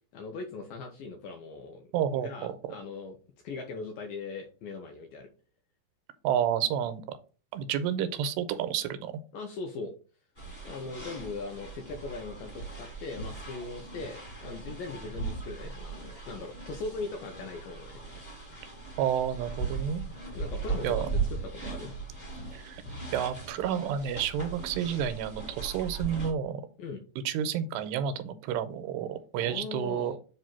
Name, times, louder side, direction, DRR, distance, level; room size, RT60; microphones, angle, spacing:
voice 1, 0.1-1.8 2.2-3.2 3.4-5.3 9.3-9.9 10.6-18.0 20.3-21.1 21.4-21.9 26.8-27.0 29.4-30.2, left 4 dB, 75° left, 3 dB, 2.1 m, -40 dB
voice 2, 1.9-2.5 6.2-7.2 7.5-9.1 19.0-20.1 20.8-21.1 22.5-22.8 23.1-26.6 27.3-30.1, right 9 dB, 85° right, 11 dB, 2.7 m, -30 dB
sound 1, 10.3-26.3, right 4 dB, 30° left, 0.7 m, -38 dB
7.5 x 2.6 x 5.8 m, 0.37 s
omnidirectional pair, 4.9 m